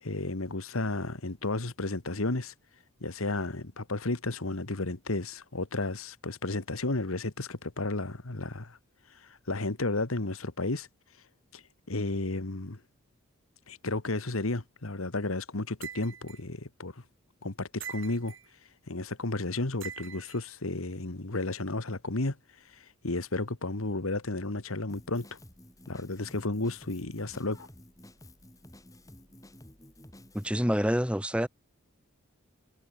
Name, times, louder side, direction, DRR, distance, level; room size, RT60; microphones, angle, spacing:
voice 1, 0.0-2.5 3.0-8.8 9.1-10.9 11.5-11.6 11.9-12.8 13.7-17.0 17.4-18.4 18.9-22.4 22.7-25.4 25.9-27.7, left 2 dB, 85° left, 1.7 m, -33 dB
sound 1, 15.8-16.4 17.8-18.5 19.8-20.4, right 8 dB, 65° right, 4.4 m, -43 dB
Drum kit, 24.9-30.5, left 1 dB, 15° left, 4.7 m, -52 dB
voice 2, 30.3-31.5, equal, 5° right, 2.4 m, -27 dB
head